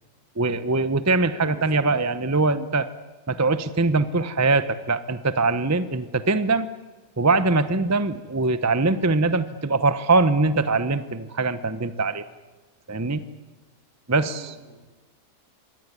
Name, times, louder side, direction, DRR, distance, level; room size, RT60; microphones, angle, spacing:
voice 1, 0.4-2.9 3.3-6.7 7.2-12.2 12.9-13.2 14.1-14.5, right 3 dB, 15° right, 13 dB, 0.7 m, -22 dB
voice 2, 1.4-1.9 14.2-14.9, right 3 dB, 70° right, 6 dB, 3.6 m, -46 dB
25.0 x 18.0 x 9.8 m, 1.3 s
omnidirectional pair, 1.7 m